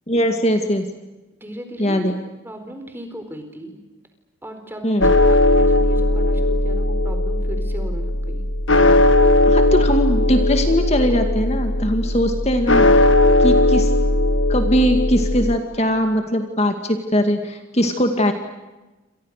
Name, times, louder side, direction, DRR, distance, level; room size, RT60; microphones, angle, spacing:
voice 1, 0.1-0.9 1.8-2.2 4.8-5.1 9.5-13.1 13.4-13.9 14.5-18.3, equal, 30° left, 6 dB, 2.2 m, -20 dB
voice 2, 1.4-2.2 2.4-3.8 4.4-8.5, equal, 10° right, 6 dB, 4.4 m, -36 dB
sound 1, 5.0-15.6, left 2 dB, 70° left, 1.6 m, -17 dB
29.5 x 27.0 x 6.7 m, 1.1 s
head